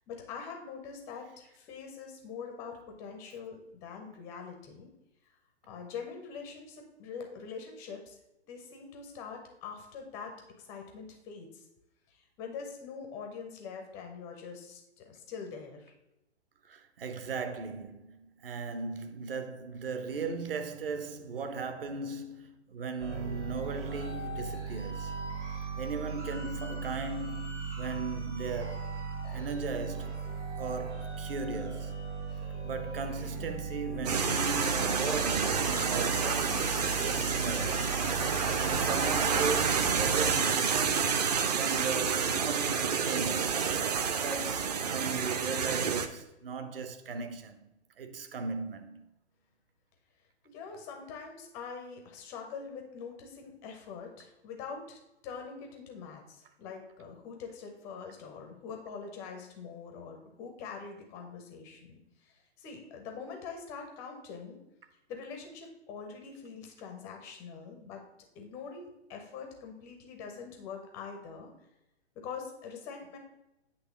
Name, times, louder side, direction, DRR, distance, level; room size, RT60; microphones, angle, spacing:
voice 1, 0.1-4.9 5.7-8.2 8.4-11.6 12.1-15.9 50.4-55.0 55.2-64.6 65.1-68.0 68.3-71.5 72.1-73.2, left 5 dB, 10° left, 0.4 m, -44 dB
voice 2, 16.7-25.1 25.8-28.9 29.3-30.2 30.6-32.0 32.6-37.8 38.6-43.5 44.1-47.6 48.0-49.0, right 4 dB, 55° right, 1.0 m, -37 dB
sound 1, 23.0-40.4, right 5 dB, 85° right, 2.7 m, -38 dB
sound 2, 34.1-40.7, left 8 dB, 75° left, 0.5 m, -42 dB
sound 3, 34.1-46.1, right 6 dB, 35° right, 0.6 m, -29 dB
8.2 x 3.1 x 6.1 m
figure-of-eight pair, 125°, 35 cm